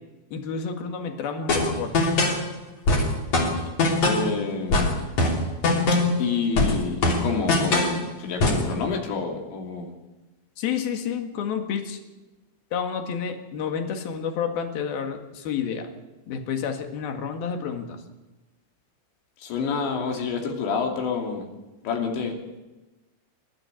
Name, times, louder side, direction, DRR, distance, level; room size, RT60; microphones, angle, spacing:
voice 1, 0.3-2.1 10.6-12.0 12.7-15.9 16.3-18.0, left 7 dB, 60° left, 5 dB, 3.5 m, -30 dB
sound 1, 1.5-2.4 2.9-4.3 4.7-6.2 6.6-8.0 8.4-8.7, left 2 dB, 45° left, 4.3 m, -22 dB
voice 2, 4.0-5.0 6.2-9.9 19.4-21.5 21.8-22.4, left 5 dB, 80° left, 1 dB, 5.1 m, -28 dB
28.5 x 13.0 x 7.2 m, 1.1 s
omnidirectional pair, 5.2 m